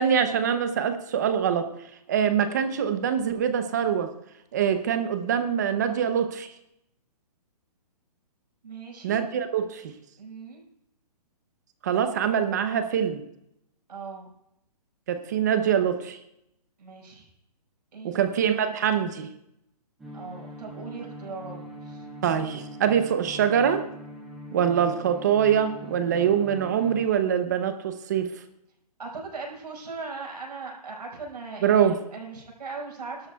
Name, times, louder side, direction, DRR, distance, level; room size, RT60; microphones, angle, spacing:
voice 1, 0.0-1.7 2.1-4.1 4.5-6.5 9.0-9.9 11.8-13.2 15.1-16.2 18.0-19.3 22.2-23.9 24.5-28.3 31.6-32.0, right 8 dB, 25° right, 9 dB, 0.7 m, -24 dB
voice 2, 8.6-9.2 10.2-10.6 13.9-14.3 16.8-17.3 17.9-18.4 20.1-22.0 29.0-33.3, right 4 dB, 80° right, 0 dB, 5.5 m, -39 dB
sound 1, 20.0-27.1, equal, ahead, 0.3 m, -42 dB
21.0 x 12.5 x 2.3 m, 0.79 s
hypercardioid pair, 170°, 21 cm